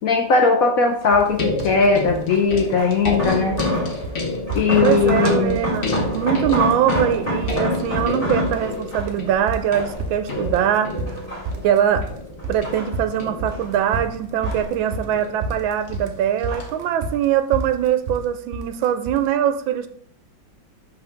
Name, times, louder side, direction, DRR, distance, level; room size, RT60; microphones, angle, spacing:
voice 1, 0.0-3.6 4.5-5.6, left 4 dB, 65° left, 3 dB, 0.9 m, -18 dB
sound 1, 1.0-1.4 2.3-4.2 4.5-9.3 9.8-10.6 11.1-11.9 12.4-13.7 14.0-15.2 15.4-16.1 16.5-16.8 17.1-17.2, left 1 dB, 20° left, 2.7 m, -27 dB
sound 2, 1.1-1.3 1.6-2.2 2.5-3.2 3.5-3.8 4.0-4.2 4.5-5.2 5.5-6.2 6.4-19.3, right 3 dB, 60° right, 0.7 m, -31 dB
sound 3, 1.2-16.6 17.7-17.8, left 2 dB, 40° left, 1.1 m, -31 dB
voice 2, 4.8-5.8 6.1-10.9 11.6-12.1 12.5-19.9, right 10 dB, 80° right, 10 dB, 1.4 m, -22 dB
5.6 x 3.8 x 5.8 m, 0.63 s
omnidirectional pair, 2.1 m